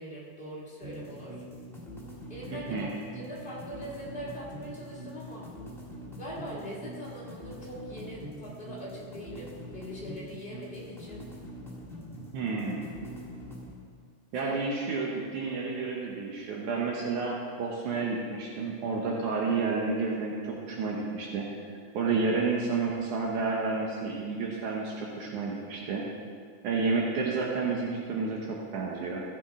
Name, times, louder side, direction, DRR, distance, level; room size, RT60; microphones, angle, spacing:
voice 1, 0.0-1.4 2.3-5.5 6.1-11.3 14.4-14.6 14.9-15.1, right 1 dB, 20° left, -6 dB, 1.9 m, -42 dB
sound 1, 0.8-13.7, equal, ahead, 1.1 m, -43 dB
voice 2, 2.5-2.9 12.3-12.8 14.3-26.0 26.6-29.2, right 4 dB, 70° right, -2 dB, 2.3 m, -30 dB
14.5 x 8.7 x 3.7 m, 2.1 s
omnidirectional pair, 3.8 m